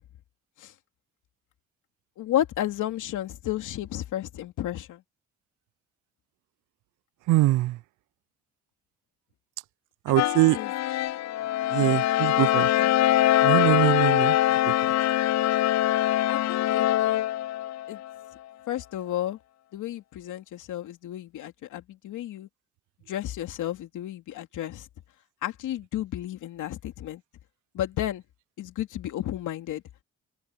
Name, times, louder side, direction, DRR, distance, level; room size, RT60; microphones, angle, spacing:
voice 1, 2.2-5.0 10.1-10.7 11.8-12.0 12.3-12.9 16.3-16.9 17.9-18.0 18.7-19.4 19.7-22.5 23.1-24.9 25.4-27.2 27.7-28.2 28.6-29.8, left 12 dB, 80° left, 2.7 m, -32 dB
voice 2, 7.3-7.8 10.1-10.6 11.7-12.7 13.4-14.4 14.7-14.8, right 17 dB, 85° right, 0.6 m, -23 dB
sound 1, 10.2-18.2, left 14 dB, 60° left, 0.5 m, -23 dB
open air
cardioid pair, 90°, 30 cm